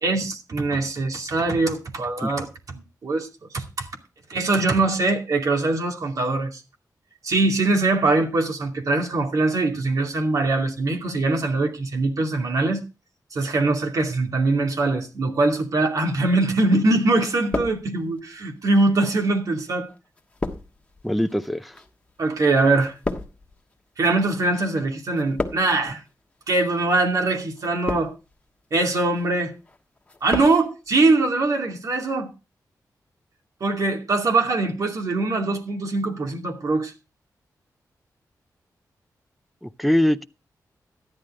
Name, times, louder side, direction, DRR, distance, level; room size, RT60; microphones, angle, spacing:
voice 1, 0.0-3.3 3.5-3.9 4.3-6.6 7.2-12.8 13.3-19.9 22.2-22.9 24.0-26.0 26.5-28.1 28.7-29.5 30.2-32.3 33.6-36.9, right 2 dB, 60° right, 2.5 m, -22 dB
sound 1, 16.4-17.0 17.2-18.3 19.0-24.6 24.9-25.9 26.6-26.9 27.6-28.4 28.8-29.3 29.6-30.6 30.9-31.0, left 2 dB, 20° left, 1.4 m, -33 dB
voice 2, 21.0-21.7 39.6-40.2, left 1 dB, ahead, 0.5 m, -22 dB
13.5 x 11.0 x 3.7 m
wide cardioid pair, 160°, 7 cm